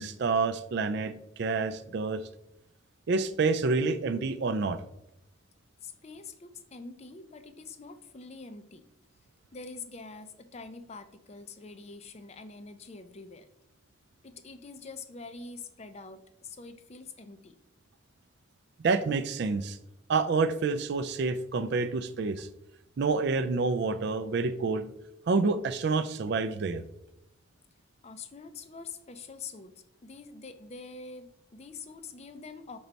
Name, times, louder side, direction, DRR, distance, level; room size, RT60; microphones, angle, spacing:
voice 1, 0.0-2.2 3.1-4.8 18.8-19.8 20.1-22.5 23.0-24.8 25.3-26.8, right 4 dB, 55° right, 11 dB, 0.4 m, -28 dB
voice 2, 5.8-8.9 9.5-13.5 14.2-17.6 28.0-32.8, left 4 dB, 30° left, 10 dB, 0.4 m, -45 dB
5.3 x 4.5 x 3.9 m, 0.86 s
head